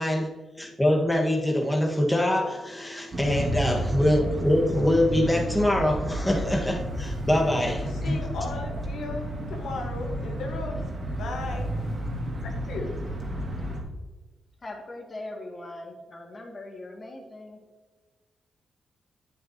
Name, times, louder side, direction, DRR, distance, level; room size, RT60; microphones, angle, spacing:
voice 1, 0.6-8.2, left 1 dB, 10° left, -1 dB, 1.5 m, -24 dB
sound 1, 3.1-13.8, right 1 dB, 45° right, 2.2 m, -31 dB
voice 2, 7.8-10.8 11.1-11.7 12.4-12.9, left 2 dB, 80° left, 2 dB, 1.2 m, -36 dB
voice 3, 14.6-17.6, left 2 dB, 35° left, 1 dB, 2.2 m, -40 dB
8.9 x 8.5 x 2.9 m, 1.3 s
cardioid pair, 70°, 0 cm